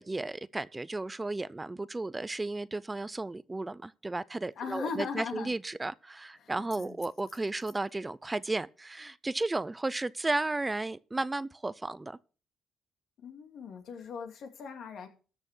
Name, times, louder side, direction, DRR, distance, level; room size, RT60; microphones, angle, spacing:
voice 1, 0.0-12.2, right 2 dB, 20° right, 0.5 m, -34 dB
voice 2, 4.5-5.5 6.4-7.0 13.2-15.1, left 6 dB, 70° left, 2.3 m, -39 dB
13.5 x 6.1 x 6.1 m
cardioid pair, 90°, 0 cm